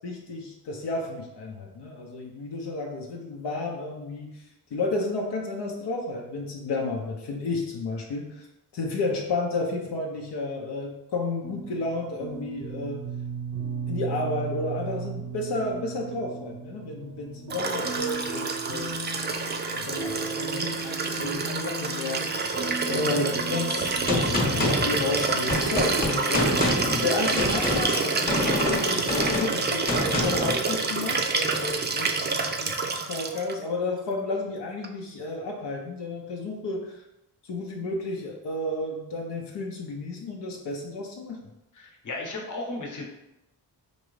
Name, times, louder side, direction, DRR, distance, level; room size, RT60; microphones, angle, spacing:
voice 1, 0.0-4.4 4.7-8.5 8.7-13.0 13.9-19.0 19.7-22.6 22.8-26.7 27.0-37.0 37.4-41.4, left 2 dB, 80° left, 0 dB, 0.7 m, -32 dB
sound 1, 11.4-27.3, right 4 dB, 90° right, 0.7 m, -37 dB
Liquid, 17.5-33.5 34.8-34.9, right 4 dB, 25° right, 0.3 m, -28 dB
Gunshot gunfire, 24.1-30.6, left 1 dB, 20° left, 0.9 m, -27 dB
voice 2, 41.8-43.1, left 2 dB, 45° left, 0 dB, 0.9 m, -35 dB
4.5 x 2.6 x 3.2 m, 0.90 s
cardioid pair, 90°, 41 cm